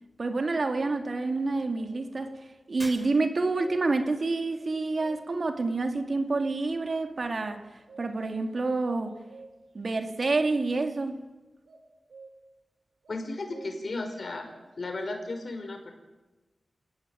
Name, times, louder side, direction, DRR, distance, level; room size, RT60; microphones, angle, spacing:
voice 1, 0.2-2.4 2.7-7.6 8.0-9.1 9.7-11.2, right 3 dB, 55° right, 2.8 m, -28 dB
sound 1, 0.8-1.0 1.7-2.7 3.2-4.1 4.5-5.5 7.5-8.4 8.7-9.8 10.3-11.2 11.7-12.5 13.0-14.0 14.5-15.1, right 3 dB, 90° right, 5.4 m, -51 dB
Shatter, 2.8-3.6, right 1 dB, 20° right, 6.9 m, -44 dB
voice 2, 13.1-14.5 14.8-15.9, left 2 dB, 60° left, 5.8 m, -34 dB
27.0 x 19.0 x 9.4 m
cardioid pair, 65°, 0 cm